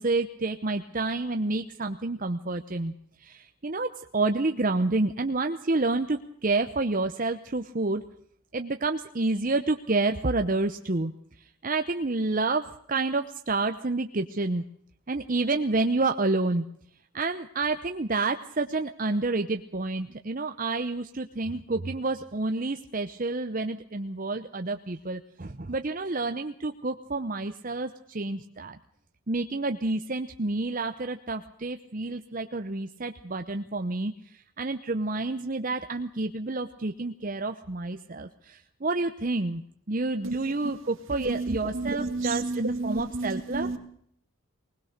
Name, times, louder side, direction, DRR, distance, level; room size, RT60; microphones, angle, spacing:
voice 1, 0.0-2.9 3.2-8.0 8.5-11.1 11.6-14.6 15.1-16.6 17.1-28.8 29.3-34.1 34.6-39.6 39.9-43.7, right 3 dB, 40° right, 7 dB, 0.8 m, -29 dB
voice 2, 41.2-43.8, right 2 dB, 70° right, 7 dB, 2.3 m, -31 dB
20.5 x 19.5 x 6.6 m, 0.67 s
head